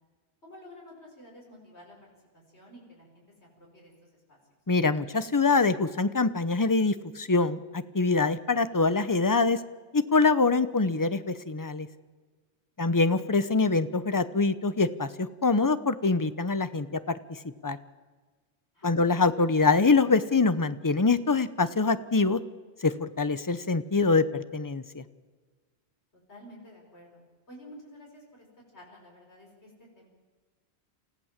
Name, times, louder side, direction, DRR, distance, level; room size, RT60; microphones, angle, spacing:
voice 1, 0.4-4.4 18.7-19.3 26.3-27.2 27.5-28.5 28.7-30.1, equal, 85° left, -1 dB, 5.6 m, -51 dB
voice 2, 4.7-9.6 9.9-11.9 12.8-17.0 17.6-17.8 18.8-22.4 22.8-25.0, left 3 dB, 20° left, 13 dB, 0.8 m, -24 dB
28.0 x 15.5 x 7.4 m, 1.4 s
omnidirectional pair, 1.1 m